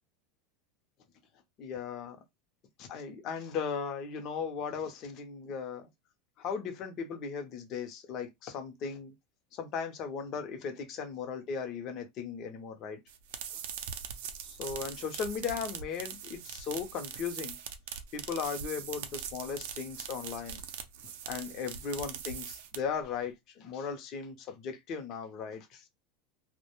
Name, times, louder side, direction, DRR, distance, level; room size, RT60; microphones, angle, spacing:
voice 1, 1.6-2.2 2.9-5.8 6.4-9.1 9.5-13.0 13.5-13.6 14.5-17.6 18.1-20.6 21.3-25.8, left 6 dB, 40° left, 0.6 m, -37 dB
sound 1, 13.1-23.0, right 8 dB, 75° right, 0.4 m, -41 dB
2.1 x 2.0 x 2.9 m
supercardioid pair, 140°, 0 cm